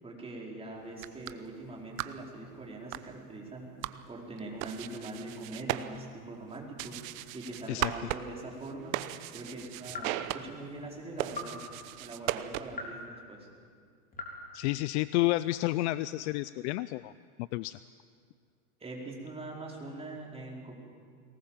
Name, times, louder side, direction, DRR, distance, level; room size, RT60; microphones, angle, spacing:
voice 1, 0.0-3.7 4.1-7.0 7.3-9.0 9.3-11.6 12.0-13.4 18.8-20.7, right 2 dB, 15° right, -2 dB, 4.7 m, -42 dB
sound 1, 0.9-12.9, right 14 dB, 60° right, 1.0 m, -39 dB
sound 2, 8.6-8.8 9.9-10.3 11.3-11.6 12.7-13.1 14.1-14.4, left 3 dB, 20° left, 3.8 m, -41 dB
voice 2, 14.5-17.1 17.4-17.8, left 18 dB, 50° left, 16 dB, 0.5 m, -30 dB
21.5 x 19.5 x 7.4 m, 2.1 s
supercardioid pair, 130°, 46 cm